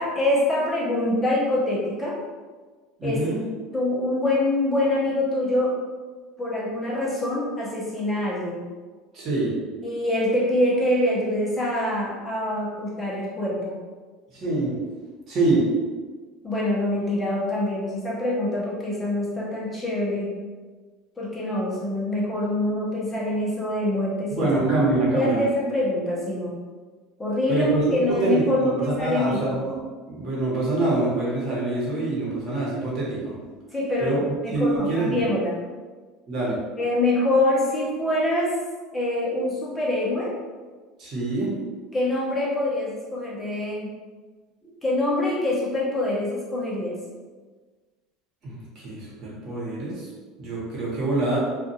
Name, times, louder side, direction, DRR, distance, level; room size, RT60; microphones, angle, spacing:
voice 1, 0.0-2.2 3.0-3.2 3.7-5.8 6.4-8.7 9.8-13.8 16.4-20.3 21.2-24.5 25.1-26.6 27.2-27.7 27.9-29.4 33.7-35.6 36.8-38.5 38.9-40.4 41.9-43.9 44.8-47.0, left 1 dB, 15° left, -5 dB, 0.8 m, -25 dB
voice 2, 3.0-3.4 9.1-9.5 14.3-14.8 15.3-15.6 24.3-25.4 27.5-29.8 30.1-33.3 34.0-34.2 34.5-35.2 36.3-36.6 41.0-41.5 48.4-50.1 50.4-51.4, right 2 dB, 40° right, -6 dB, 1.1 m, -25 dB
2.5 x 2.4 x 2.7 m, 1.4 s
supercardioid pair, 125°, 0 cm